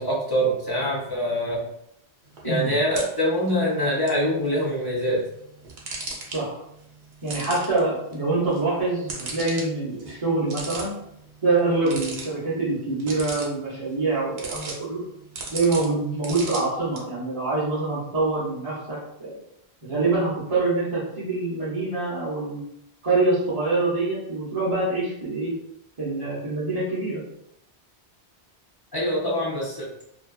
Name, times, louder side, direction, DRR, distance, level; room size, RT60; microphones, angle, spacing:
voice 1, 0.0-1.6 2.4-5.2 28.9-29.9, equal, 35° left, -5 dB, 0.4 m, -24 dB
sound 1, 2.2-17.0, right 3 dB, 75° right, 0.9 m, -40 dB
voice 2, 6.3-6.6 7.2-10.9 11.4-15.0 15.5-19.4 19.8-22.6 23.0-25.5 26.0-27.2, right 3 dB, 35° right, -9 dB, 0.6 m, -25 dB
2.6 x 2.2 x 2.3 m, 0.76 s
omnidirectional pair, 1.1 m